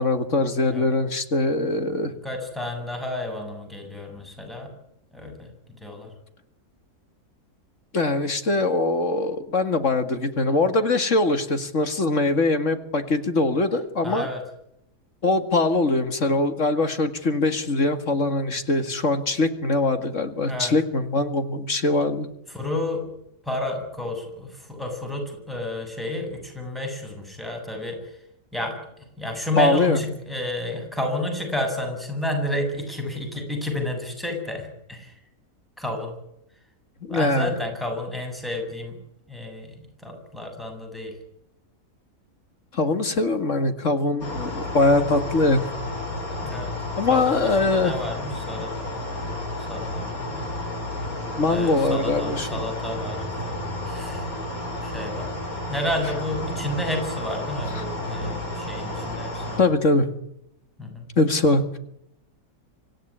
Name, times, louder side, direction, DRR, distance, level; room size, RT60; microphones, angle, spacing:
voice 1, 0.0-2.1 7.9-14.3 15.2-22.3 29.6-30.0 37.0-37.5 42.7-45.7 47.0-47.9 51.4-52.6 57.8-57.9 59.6-60.1 61.2-61.8, left 2 dB, 55° left, 8 dB, 2.3 m, -22 dB
voice 2, 2.2-4.7 5.1-6.1 14.0-14.4 20.5-20.7 22.5-23.1 23.4-28.2 28.5-35.1 35.8-36.1 37.1-39.0 39.3-41.1 44.2-44.3 46.4-46.7 47.1-49.0 49.7-50.6 51.5-54.3 54.8-55.3 55.7-59.6 60.8-61.1, left 1 dB, ahead, 2 dB, 7.4 m, -31 dB
sound 1, 44.2-59.6, left 1 dB, 70° left, 4.8 m, -32 dB
26.0 x 16.0 x 9.9 m, 0.79 s
omnidirectional pair, 1.6 m